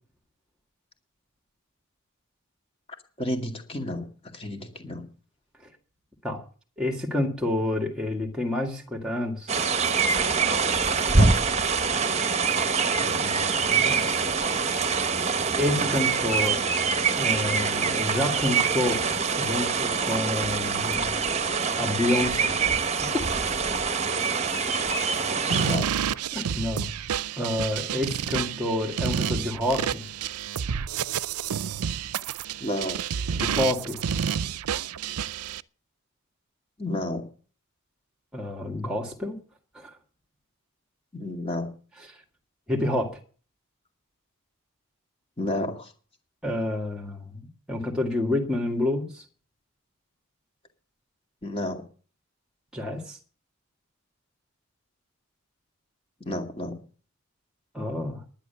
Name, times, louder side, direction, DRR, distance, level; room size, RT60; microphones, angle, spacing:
voice 1, 3.2-4.1 4.3-5.1 11.2-11.3 25.5-25.9 32.6-33.1 36.8-37.2 41.1-41.7 45.4-45.9 51.4-51.8 56.2-56.8, left 1 dB, 25° left, 4 dB, 2.3 m, -31 dB
voice 2, 6.8-9.5 13.0-14.1 15.6-16.6 17.2-19.0 19.4-21.1 21.7-22.5 23.1-23.2 26.3-26.9 27.4-30.1 33.3-34.0 38.3-39.4 39.7-40.0 42.7-43.2 46.4-49.2 52.7-53.2 57.7-58.2, left 1 dB, 5° right, 2 dB, 1.9 m, -28 dB
sound 1, 9.5-25.8, right 5 dB, 30° right, 1.1 m, -25 dB
sound 2, 25.5-35.6, right 8 dB, 90° right, 0.5 m, -29 dB
11.0 x 10.5 x 6.9 m, 0.40 s
head